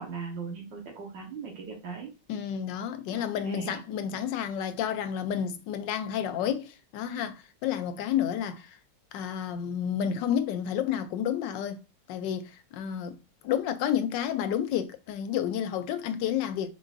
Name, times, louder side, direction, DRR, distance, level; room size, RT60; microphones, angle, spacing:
voice 1, 0.0-2.1 3.1-3.8, right 5 dB, 90° right, 1.9 m, -39 dB
voice 2, 2.3-8.8 9.1-11.8 12.1-13.2 13.4-16.7, left 9 dB, 85° left, 1.3 m, -30 dB
4.0 x 3.8 x 2.5 m
omnidirectional pair, 1.9 m